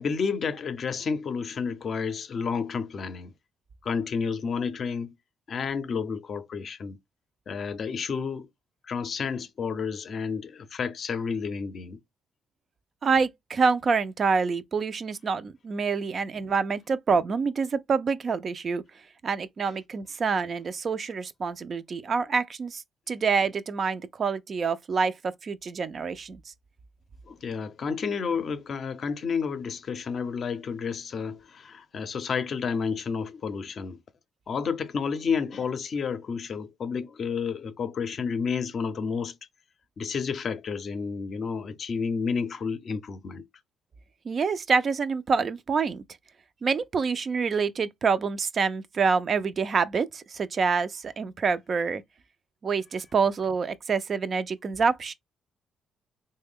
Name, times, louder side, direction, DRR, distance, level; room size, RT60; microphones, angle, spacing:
voice 1, 0.0-3.3 3.8-5.1 5.5-7.0 7.5-8.5 8.9-12.0 27.3-34.0 34.5-39.3 40.0-43.5, left 5 dB, 55° left, 0.5 m, -30 dB
voice 2, 13.0-18.8 19.2-26.5 44.3-46.0 46.6-52.0 52.6-55.1, right 5 dB, 45° right, 0.4 m, -27 dB
3.2 x 2.1 x 3.4 m
cardioid pair, 90°, 0 cm